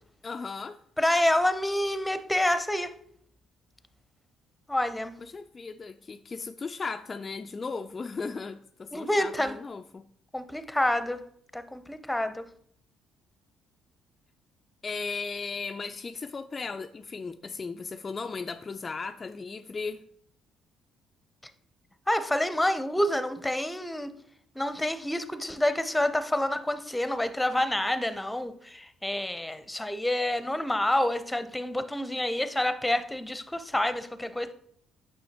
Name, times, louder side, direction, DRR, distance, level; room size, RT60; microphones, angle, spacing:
voice 1, 0.2-0.8 5.2-10.0 14.8-20.0, left 4 dB, 35° left, 6 dB, 0.4 m, -36 dB
voice 2, 1.0-2.9 4.7-5.1 8.9-9.6 10.3-11.2 11.5-12.4 22.1-24.1 24.6-34.5, left 1 dB, 10° left, 11 dB, 0.7 m, -28 dB
9.6 x 5.6 x 2.9 m, 0.66 s
hypercardioid pair, 45°, 0 cm